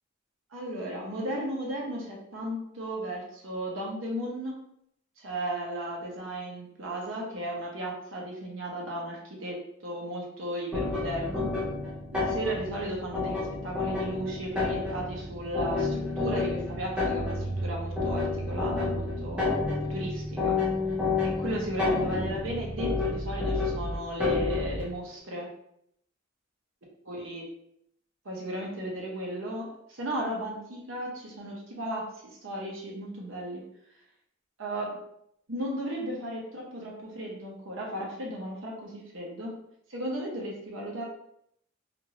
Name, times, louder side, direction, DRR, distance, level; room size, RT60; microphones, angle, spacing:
voice 1, 0.5-4.6 5.2-11.5 12.1-19.6 19.9-20.6 21.2-25.5 27.0-27.4 28.2-33.6 34.6-35.0 35.5-39.5 39.9-41.0, right 1 dB, 85° right, -2 dB, 0.8 m, -35 dB
sound 1, 10.7-24.9, left 3 dB, 5° right, 0.7 m, -30 dB
2.7 x 2.5 x 3.0 m, 0.75 s
head